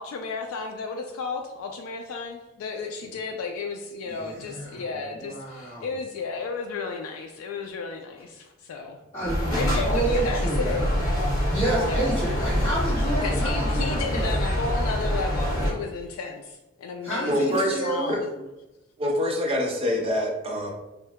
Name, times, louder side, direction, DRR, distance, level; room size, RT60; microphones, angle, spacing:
voice 1, 0.0-9.0 9.5-10.9 11.8-12.1 13.2-18.3, left 4 dB, 85° left, 3 dB, 0.3 m, -33 dB
voice 2, 4.2-4.9 5.2-5.8 9.1-9.4 9.8-10.8 11.5-14.3 17.0-18.1, right 2 dB, 30° left, -13 dB, 1.2 m, -29 dB
sound 1, 9.2-15.7, equal, 15° left, 1.3 m, -25 dB
voice 3, 17.3-17.8 19.0-20.7, equal, 25° right, 0 dB, 0.5 m, -25 dB
2.7 x 2.1 x 3.4 m, 1.0 s
head